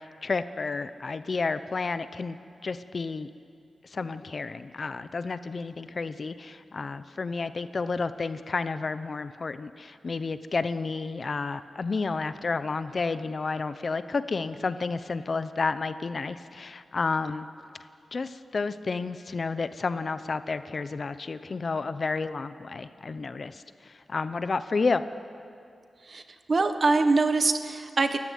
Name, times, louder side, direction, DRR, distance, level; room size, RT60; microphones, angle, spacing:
voice 1, 0.0-2.4 2.6-3.3 3.8-17.5 18.1-25.0, left 4 dB, 45° left, 12 dB, 0.8 m, -31 dB
voice 2, 26.5-28.2, right 3 dB, 40° right, 8 dB, 1.4 m, -23 dB
29.0 x 14.5 x 9.3 m, 2.4 s
wide cardioid pair, 135°, 0 cm